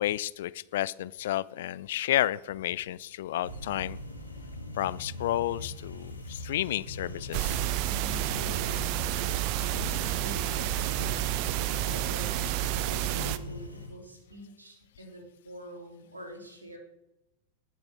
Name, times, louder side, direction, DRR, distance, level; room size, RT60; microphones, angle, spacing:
voice 1, 0.0-4.0 4.8-7.6, left 13 dB, 55° left, 19 dB, 0.4 m, -31 dB
sound 1, 3.4-13.9, left 2 dB, 85° left, 1.6 m, -41 dB
sound 2, 7.3-13.4, right 14 dB, 45° right, 0.6 m, -30 dB
voice 2, 7.8-11.3 11.8-16.8, right 1 dB, 80° right, 1 dB, 2.9 m, -45 dB
19.0 x 6.9 x 3.5 m, 0.91 s
figure-of-eight pair, 90°, 0 cm